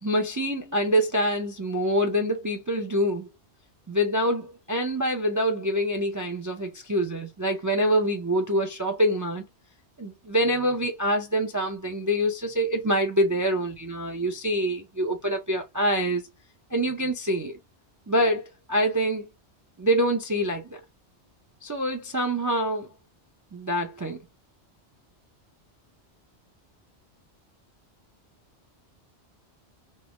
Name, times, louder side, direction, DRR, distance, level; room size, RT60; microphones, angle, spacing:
voice 1, 0.0-3.3 3.9-9.4 10.0-16.2 16.7-17.6 18.1-18.4 18.7-19.3 19.8-20.8 21.6-22.9 23.5-24.2, equal, 30° right, 0.3 m, -25 dB
3.3 x 2.1 x 3.0 m
omnidirectional pair, 1.2 m